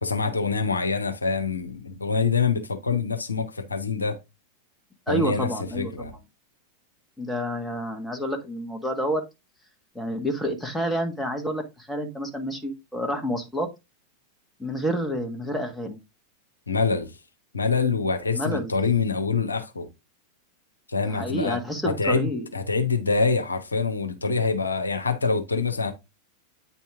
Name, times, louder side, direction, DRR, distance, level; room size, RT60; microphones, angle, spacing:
voice 1, 0.0-4.2 5.1-6.2 16.7-17.1 17.5-19.9 20.9-21.6 21.9-25.9, left 4 dB, 80° left, 1.0 m, -25 dB
voice 2, 5.1-6.2 7.2-9.2 9.9-13.7 14.6-16.0 18.3-18.7 21.0-22.5, equal, 5° left, 1.6 m, -29 dB
9.1 x 4.3 x 3.6 m
figure-of-eight pair, 90°, 0 cm